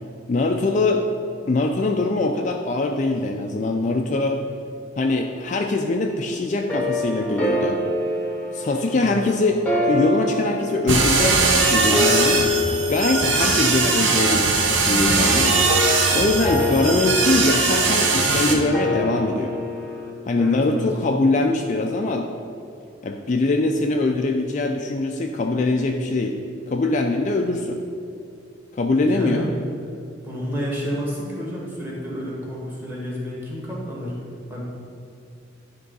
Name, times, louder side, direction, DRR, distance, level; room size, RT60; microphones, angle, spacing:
voice 1, 0.3-1.1 1.5-4.4 5.0-7.8 8.5-12.5 12.9-15.6 16.1-19.6 20.2-22.3 23.0-26.4 26.7-27.8 28.7-29.5, left 2 dB, 40° left, 3 dB, 0.4 m, -22 dB
sound 1, 6.7-20.1, left 1 dB, 5° left, 1.0 m, -27 dB
sound 2, 10.9-18.5, right 4 dB, 70° right, 0.9 m, -20 dB
voice 2, 20.4-20.9 29.0-29.5 30.2-34.1 34.5-34.7, equal, 10° right, -5 dB, 1.7 m, -29 dB
10.5 x 3.7 x 5.4 m, 2.5 s
head